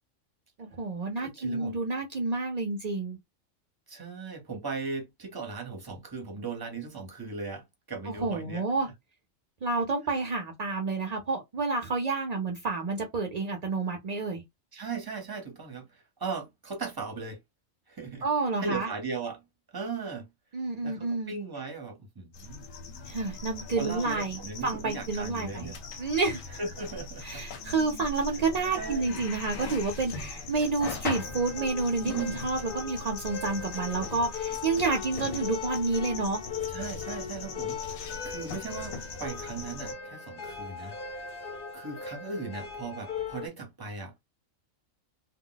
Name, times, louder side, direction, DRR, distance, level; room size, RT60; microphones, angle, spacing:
voice 1, 0.6-3.2 8.1-8.9 9.6-14.4 18.2-18.9 20.5-21.3 23.1-26.4 27.2-36.4, right 3 dB, 60° right, 0.4 m, -29 dB
voice 2, 1.2-1.7 3.9-8.6 10.1-10.2 14.7-17.4 17.9-18.3 18.6-19.4 19.7-20.3 20.8-22.7 23.8-25.8 26.6-27.4 28.7-29.3 32.0-32.4 35.3-35.4 36.7-38.9 39.2-41.2 41.7-44.2, right 4 dB, 20° right, 0.6 m, -38 dB
sound 1, 22.3-39.9, left 4 dB, 90° left, 1.0 m, -40 dB
sound 2, 31.1-43.5, left 6 dB, 55° left, 0.7 m, -39 dB
2.2 x 2.0 x 3.8 m
omnidirectional pair, 1.4 m